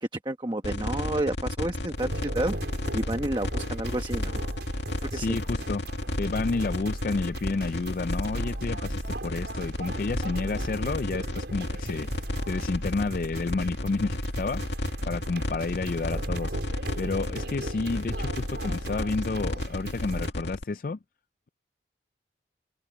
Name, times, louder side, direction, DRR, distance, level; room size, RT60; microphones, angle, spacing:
voice 1, 0.2-2.6 2.9-4.4 5.1-5.4, right 1 dB, 25° right, 1.2 m, -30 dB
sound 1, 0.6-20.6, left 1 dB, 80° left, 2.2 m, -33 dB
sound 2, 2.0-20.3, right 1 dB, 75° right, 5.0 m, -37 dB
voice 2, 5.1-5.8 6.2-14.6 15.1-16.6 17.0-21.0, left 3 dB, 50° left, 0.4 m, -30 dB
head